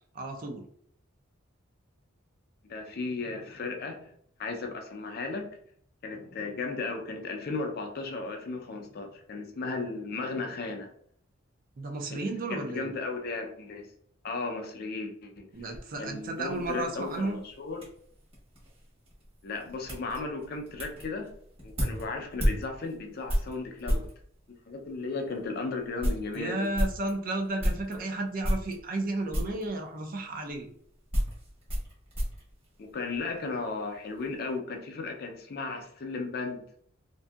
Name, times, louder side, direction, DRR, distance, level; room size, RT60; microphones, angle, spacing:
voice 1, 0.1-0.6 11.8-12.9 15.5-17.4 26.3-30.7, right 2 dB, 45° right, 4 dB, 0.5 m, -33 dB
voice 2, 2.6-4.1 4.4-5.5 6.0-10.9 12.1-13.9 14.2-15.5 16.0-17.9 19.4-21.3 21.6-24.1 24.5-26.7 27.8-28.0 32.8-36.6, left 3 dB, 50° left, 3 dB, 0.4 m, -35 dB
sound 1, 15.5-24.2 24.9-25.0 25.4-25.5 25.8-28.0 28.4-29.1 29.3-29.7 30.5-33.4 33.7-34.3, equal, 30° right, 1.1 m, -33 dB
2.6 x 2.6 x 2.3 m, 0.64 s
head